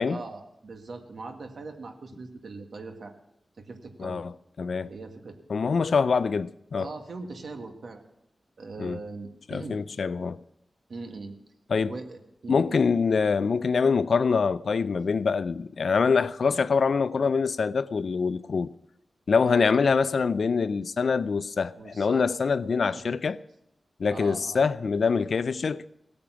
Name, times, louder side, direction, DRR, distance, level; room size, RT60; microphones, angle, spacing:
voice 1, 0.0-3.1 3.6-4.2 4.9-5.4 6.8-8.0 8.6-9.8 10.9-11.4 11.9-12.8 19.5-19.9 21.8-22.3 22.8-23.0 24.1-24.6, right 3 dB, 70° right, 1.7 m, -41 dB
voice 2, 4.0-4.3 4.6-4.9 5.5-6.9 8.8-9.0 9.5-10.4 11.7-11.9 12.5-18.7 19.3-23.4 24.0-25.8, left 5 dB, 65° left, 0.4 m, -24 dB
17.0 x 8.6 x 6.0 m
wide cardioid pair, 125°, 0 cm